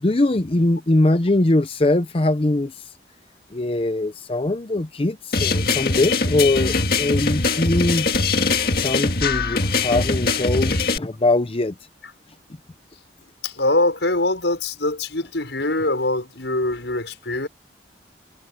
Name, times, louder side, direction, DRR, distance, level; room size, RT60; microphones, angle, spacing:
voice 1, 0.0-2.8 3.5-8.1 8.8-11.7, left 2 dB, 30° left, 0.7 m, -21 dB
sound 1, 5.3-11.0, left 4 dB, 60° left, 1.9 m, -22 dB
voice 2, 13.4-17.5, left 2 dB, 90° left, 6.2 m, -23 dB
head